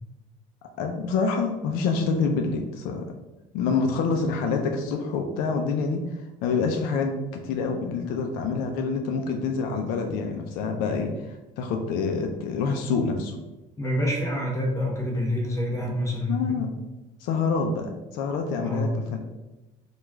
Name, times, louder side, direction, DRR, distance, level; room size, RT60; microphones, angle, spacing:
voice 1, 0.8-3.0 3.5-6.0 6.4-13.4 16.3-16.7 17.2-19.2, left 4 dB, 80° left, 3 dB, 0.5 m, -27 dB
voice 2, 13.8-16.7 18.6-18.9, equal, 20° left, -3 dB, 0.9 m, -27 dB
3.1 x 2.3 x 3.4 m, 1.1 s
cardioid pair, 125°, 15 cm